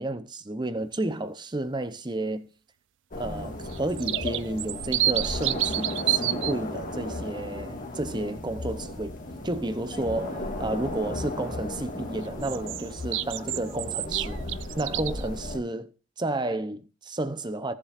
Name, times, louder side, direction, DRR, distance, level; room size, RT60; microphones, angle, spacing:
voice 1, 0.0-2.5 3.2-9.1 9.4-15.9 16.2-17.7, right 2 dB, 20° right, 0.7 m, -31 dB
sound 1, 3.1-15.6, left 1 dB, 40° left, 1.8 m, -35 dB
sound 2, 3.7-6.5 12.4-15.3, right 14 dB, 60° right, 0.4 m, -29 dB
17.0 x 7.5 x 2.5 m
head